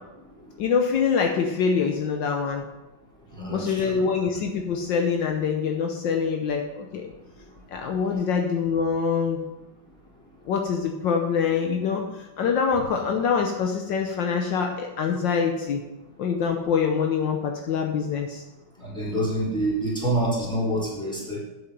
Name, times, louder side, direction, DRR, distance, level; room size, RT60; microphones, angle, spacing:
voice 1, 0.6-2.6 3.5-7.1 7.7-9.4 10.5-12.0 12.4-15.8 16.2-18.4, left 6 dB, 70° left, 3 dB, 1.5 m, -25 dB
voice 2, 3.4-4.0 18.8-21.4, right 1 dB, ahead, -7 dB, 3.5 m, -27 dB
8.6 x 7.5 x 5.3 m, 1.0 s
omnidirectional pair, 2.1 m